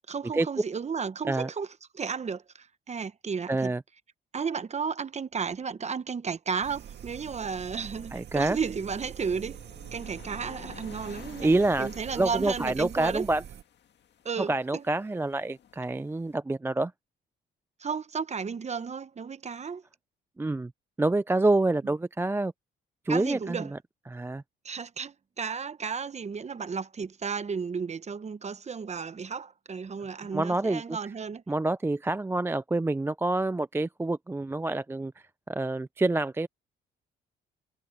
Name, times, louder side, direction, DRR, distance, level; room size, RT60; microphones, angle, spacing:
voice 1, 0.1-1.7 1.9-3.7 4.3-9.6 9.9-11.5 11.8-13.2 14.2-14.8 17.8-19.8 23.1-23.7 24.6-31.4, right 5 dB, 35° right, 1.0 m, -33 dB
voice 2, 3.5-3.8 8.1-8.6 11.4-11.9 12.2-13.4 14.4-16.9 20.4-20.7 21.0-22.5 23.1-23.8 24.1-24.4 30.3-31.0 31.5-35.1 35.5-36.5, right 2 dB, 10° right, 0.4 m, -27 dB
sound 1, 6.6-13.6, right 9 dB, 60° right, 1.9 m, -44 dB
sound 2, 9.2-16.4, left 9 dB, 60° left, 1.9 m, -52 dB
cardioid pair, 90°, 20 cm